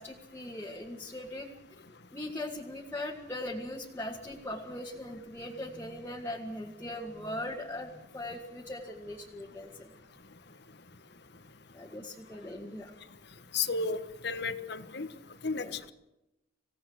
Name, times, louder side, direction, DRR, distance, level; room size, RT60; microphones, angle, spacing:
voice 1, 0.0-1.5 2.1-9.9 11.7-12.9 15.6-15.7, left 1 dB, 10° left, -3 dB, 2.1 m, -40 dB
voice 2, 13.5-15.1 15.4-15.9, left 4 dB, 60° left, 12 dB, 1.3 m, -33 dB
26.5 x 17.0 x 6.4 m, 0.92 s
head